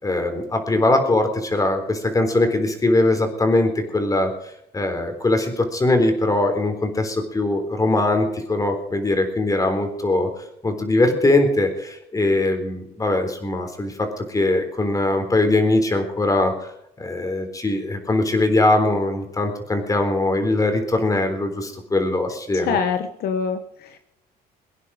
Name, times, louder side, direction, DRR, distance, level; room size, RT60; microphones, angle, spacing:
voice 1, 0.0-4.3 4.7-16.7 17.0-22.8, left 2 dB, 20° left, 5 dB, 3.8 m, -21 dB
voice 2, 22.5-24.0, left 6 dB, 65° left, 8 dB, 1.1 m, -25 dB
23.0 x 9.9 x 5.0 m, 0.78 s
cardioid pair, 110°, 17 cm